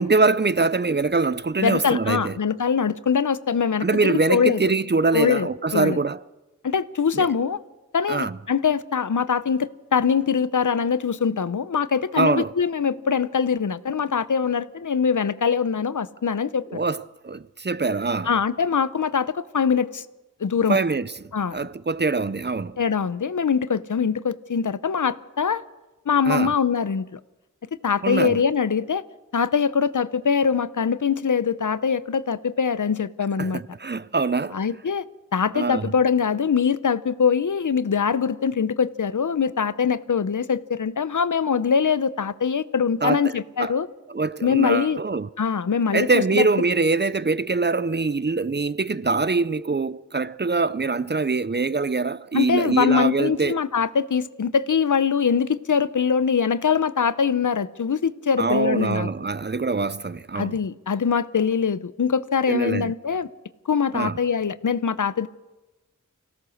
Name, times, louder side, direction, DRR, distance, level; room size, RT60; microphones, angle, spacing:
voice 1, 0.0-2.3 3.8-6.2 7.1-7.3 8.1-8.4 12.2-12.5 16.7-18.3 20.7-21.1 21.5-22.8 26.3-26.5 28.0-28.4 33.4-34.6 35.5-35.9 43.0-43.7 44.1-45.3 45.9-53.6 58.4-60.6 62.5-62.9 63.9-64.2, right 3 dB, 35° right, 0.6 m, -23 dB
voice 2, 1.6-4.6 5.1-6.0 6.6-7.6 7.9-16.6 18.2-20.0 20.4-20.8 21.3-21.6 22.8-25.6 26.1-27.2 27.8-29.0 29.3-33.6 34.5-35.0 35.3-43.9 44.4-45.0 45.4-46.5 52.3-59.1 60.3-63.3 63.7-65.3, left 6 dB, 70° left, 0.7 m, -23 dB
24.5 x 16.5 x 6.4 m
wide cardioid pair, 50°, 31 cm